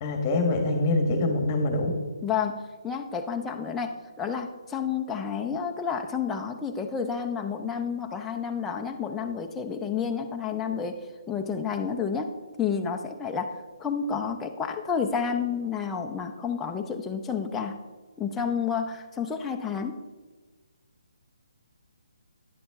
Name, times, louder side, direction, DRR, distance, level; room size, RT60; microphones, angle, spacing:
voice 1, 0.0-1.9, left 2 dB, 25° left, 4 dB, 1.3 m, -24 dB
voice 2, 2.2-2.6 2.8-11.0 11.3-12.3 12.6-17.7 18.2-20.0, left 6 dB, 10° left, 3 dB, 0.5 m, -30 dB
10.0 x 7.9 x 3.5 m, 1.3 s
hypercardioid pair, 160°, 3 cm